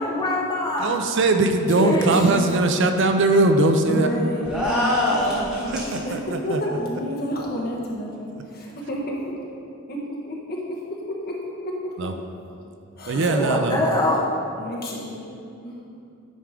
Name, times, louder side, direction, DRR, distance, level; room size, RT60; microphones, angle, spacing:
voice 1, 0.0-0.9 1.7-2.1 13.3-14.3, left 1 dB, 20° left, -3 dB, 1.0 m, -23 dB
voice 2, 0.8-4.1 5.7-6.6 12.0-12.1 13.1-13.8, right 2 dB, 60° right, 6 dB, 0.5 m, -20 dB
voice 3, 3.9-5.0 5.3-9.0 9.9-10.8 11.2-11.3 13.0-13.3 14.6-15.7, equal, 50° left, -3 dB, 1.2 m, -30 dB
sound 1, 4.4-6.0, left 1 dB, 5° right, 1.6 m, -23 dB
9.2 x 3.6 x 4.9 m, 2.5 s
head